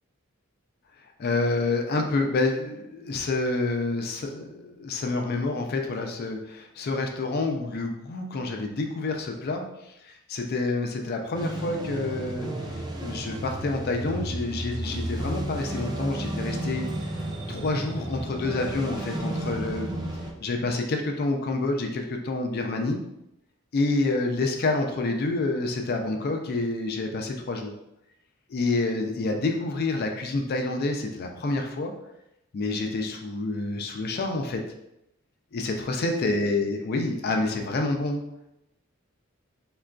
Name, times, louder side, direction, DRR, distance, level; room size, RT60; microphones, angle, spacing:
voice 1, 1.2-16.9 17.5-19.9 20.4-23.0 23.7-27.7 28.5-31.9 32.5-34.6 35.5-38.2, left 2 dB, 50° left, 4 dB, 0.4 m, -28 dB
sound 1, 11.3-20.3, right 1 dB, 20° right, 0.3 m, -33 dB
3.6 x 2.4 x 2.2 m, 0.84 s
head